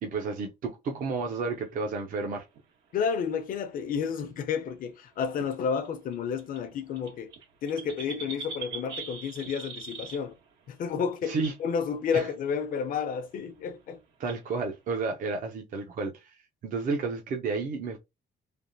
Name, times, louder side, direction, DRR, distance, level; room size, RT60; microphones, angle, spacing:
voice 1, 0.0-2.4 11.3-11.5 12.1-12.3 14.2-16.4 16.6-18.0, right 4 dB, 50° right, 0.7 m, -31 dB
sound 1, 0.9-2.6 3.5-3.6 3.9-4.1 5.2-5.5 5.8-5.9 6.1-6.2 6.4-10.5 10.9-11.0 11.3-11.6 12.2-12.5 13.0-13.1 13.3-13.4 13.7-13.8 14.3-14.4, right 5 dB, 90° right, 1.6 m, -42 dB
voice 2, 2.9-7.3 7.6-10.4 10.7-14.0, left 6 dB, 55° left, 0.7 m, -31 dB
3.4 x 2.3 x 2.7 m
cardioid pair, 140°, 17 cm